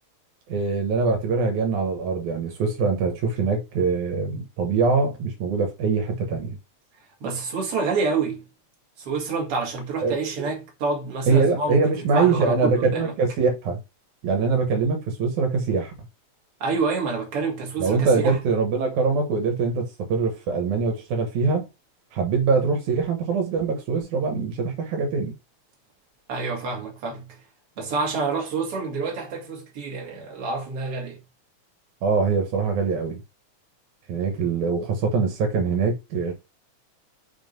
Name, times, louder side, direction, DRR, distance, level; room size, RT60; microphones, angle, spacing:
voice 1, 0.5-6.6 10.0-10.5 11.3-13.8 14.2-15.9 17.8-21.7 22.1-25.4 32.0-33.2 34.1-36.3, right 4 dB, 85° right, 2.8 m, -23 dB
voice 2, 7.2-8.4 9.0-13.1 16.6-18.4 26.3-27.4 27.8-31.2, right 4 dB, 50° right, 2.9 m, -28 dB
6.2 x 3.7 x 5.3 m
omnidirectional pair, 3.4 m